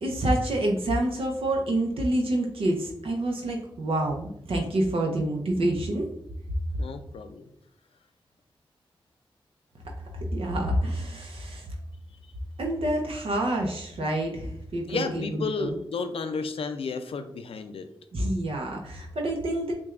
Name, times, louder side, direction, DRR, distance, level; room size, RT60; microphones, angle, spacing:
voice 1, 0.0-6.1 10.1-11.7 12.6-15.8 18.1-19.7, right 1 dB, 80° right, 1 dB, 0.6 m, -27 dB
voice 2, 6.8-7.4 14.9-17.9, left 4 dB, 80° left, 8 dB, 0.4 m, -32 dB
5.9 x 2.3 x 2.4 m, 0.73 s
cardioid pair, 55°, 10 cm